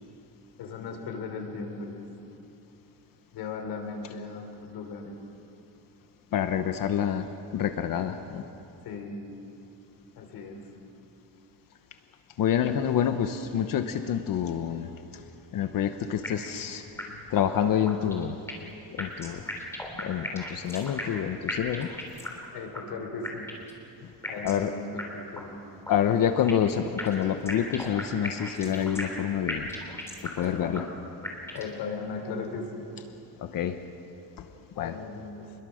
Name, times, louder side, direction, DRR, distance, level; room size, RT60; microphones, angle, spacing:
voice 1, 0.6-2.1 3.3-5.1 8.8-9.2 10.2-10.7 22.5-23.5 24.3-25.6 30.4-30.8 31.5-32.9 34.8-35.5, left 4 dB, 75° left, 4 dB, 3.8 m, -37 dB
voice 2, 6.3-8.4 12.4-15.2 15.5-16.8 17.3-18.4 18.9-19.4 20.0-21.9 24.0-24.1 24.4-24.7 25.9-29.7 30.2-30.8 33.4-33.8 34.4-34.5 34.8-35.0, left 9 dB, 55° left, 8 dB, 1.0 m, -27 dB
sound 1, 16.2-16.7 17.0-17.1 17.4-17.5 17.9-18.7 19.0-21.2 21.5-22.5 22.7-22.8 23.2-23.8 24.2-24.7 25.0-25.1 25.4-25.5 25.8-26.7 27.0-29.2 29.5-30.5 30.7-30.8 31.2-31.8, left 1 dB, 5° left, 3.3 m, -36 dB
28.0 x 21.5 x 6.5 m, 2.9 s
cardioid pair, 165°, 41 cm